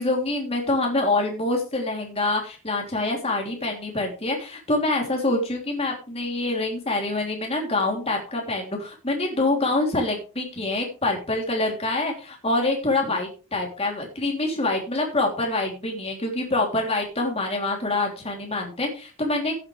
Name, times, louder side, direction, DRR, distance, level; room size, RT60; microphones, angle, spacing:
voice 1, 0.0-19.5, left 2 dB, 30° left, 0 dB, 3.2 m, -26 dB
16.0 x 8.6 x 3.4 m, 0.33 s
head